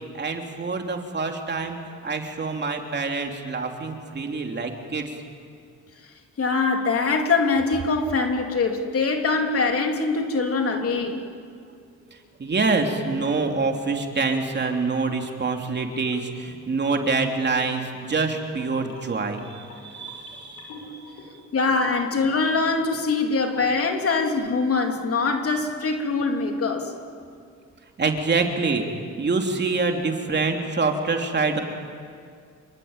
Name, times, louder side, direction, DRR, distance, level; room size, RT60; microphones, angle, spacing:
voice 1, 0.1-5.2 12.4-21.3 26.8-26.9 28.0-31.6, right 4 dB, 35° right, 3 dB, 3.3 m, -26 dB
voice 2, 6.4-11.2 21.5-26.9, left 4 dB, 50° left, 3 dB, 3.5 m, -23 dB
sound 1, 14.5-15.3 16.0-16.4 16.9-24.4 24.7-25.1 25.4-25.7, left 4 dB, 80° left, 6.3 m, -46 dB
28.0 x 23.5 x 9.1 m, 2.2 s
cardioid pair, 90°, 30 cm